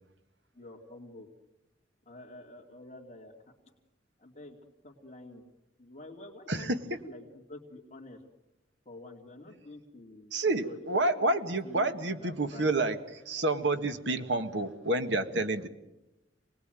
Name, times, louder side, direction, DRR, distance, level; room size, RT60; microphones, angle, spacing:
voice 1, 0.5-1.3 2.0-3.3 4.2-5.4 5.8-6.7 7.0-8.2 8.8-10.3 10.6-11.4 11.6-12.8, left 2 dB, 35° left, -1 dB, 2.7 m, -48 dB
voice 2, 10.3-13.0 13.3-15.7, right 2 dB, 70° right, 8 dB, 1.7 m, -29 dB
28.5 x 20.0 x 9.2 m, 0.96 s
head